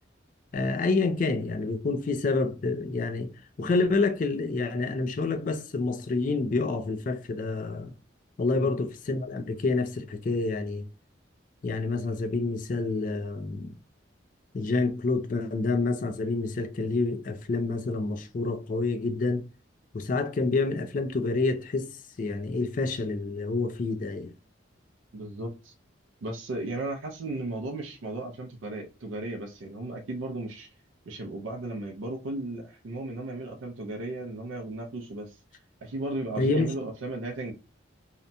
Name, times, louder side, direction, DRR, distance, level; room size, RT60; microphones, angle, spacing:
voice 1, 0.5-3.3 3.6-7.9 8.4-10.9 11.6-13.7 14.5-19.4 19.9-21.9 22.2-24.3 36.4-36.7, left 3 dB, 45° left, 0.3 m, -28 dB
voice 2, 25.1-25.7 26.2-30.7 31.1-35.4 35.8-37.5, right 2 dB, 85° right, 0.4 m, -35 dB
2.7 x 2.1 x 2.6 m
head